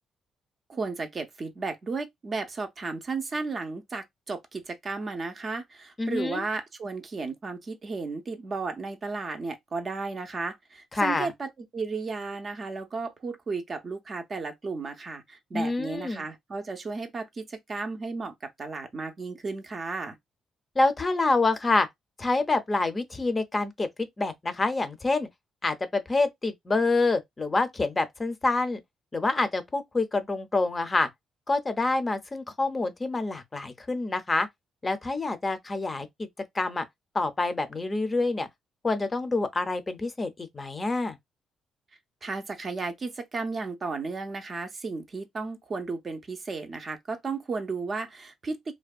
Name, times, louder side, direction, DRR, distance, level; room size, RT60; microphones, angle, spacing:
voice 1, 0.7-20.2 42.2-48.7, right 4 dB, 40° right, 0.5 m, -34 dB
voice 2, 6.0-6.4 10.9-11.3 15.5-16.3 20.8-21.9 22.2-25.3 25.6-28.8 29.1-31.1 31.5-34.5 34.8-36.3 36.5-36.9 37.1-38.5 38.8-41.2, left 3 dB, 25° left, 0.5 m, -27 dB
2.5 x 2.1 x 2.3 m
cardioid pair, 90°, 0 cm